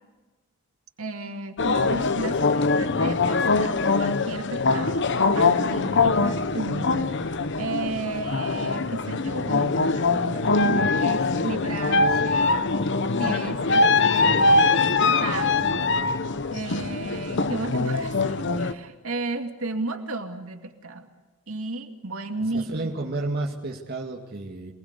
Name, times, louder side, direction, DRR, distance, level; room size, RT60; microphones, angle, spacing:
voice 1, 1.0-5.1 5.3-12.6 13.2-16.1 16.5-21.1 21.5-22.7, right 2 dB, 75° right, 6 dB, 2.3 m, -34 dB
sound 1, 1.6-18.7, left 3 dB, 55° left, 1.0 m, -23 dB
voice 2, 22.5-24.7, right 2 dB, 45° right, -1 dB, 2.2 m, -31 dB
27.5 x 20.5 x 8.2 m, 1.2 s
head